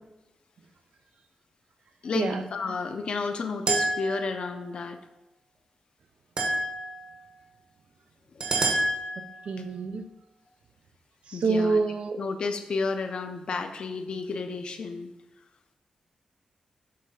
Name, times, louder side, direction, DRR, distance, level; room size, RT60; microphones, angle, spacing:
voice 1, 2.0-5.0 8.3-8.4 11.3-11.8 12.2-15.1, left 4 dB, 50° left, 7 dB, 0.6 m, -31 dB
sound 1, 3.7-4.5 6.4-7.1 8.4-9.4, right 2 dB, 45° right, 1.2 m, -28 dB
voice 2, 9.4-10.0 11.3-12.3, right 4 dB, 65° right, 9 dB, 0.5 m, -27 dB
7.6 x 3.3 x 5.3 m, 0.94 s
wide cardioid pair, 175°, 2 cm